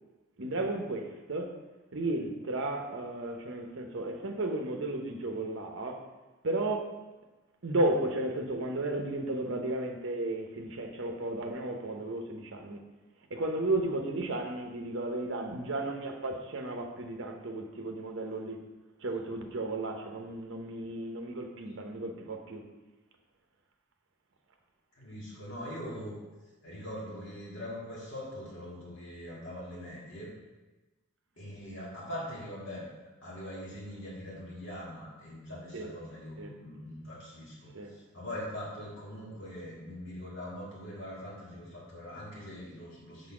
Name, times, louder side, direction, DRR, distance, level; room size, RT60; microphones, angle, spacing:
voice 1, 0.4-1.6 1.9-6.1 6.4-7.0 7.6-12.8 13.3-18.6 19.0-22.6 35.7-35.9 36.4-36.5 37.7-37.9, right 2 dB, 55° right, 4 dB, 0.7 m, -34 dB
voice 2, 25.0-26.2 26.6-30.3 31.4-32.9 33.2-43.3, left 1 dB, 55° left, -6 dB, 2.0 m, -42 dB
6.4 x 4.0 x 4.8 m, 1.2 s
head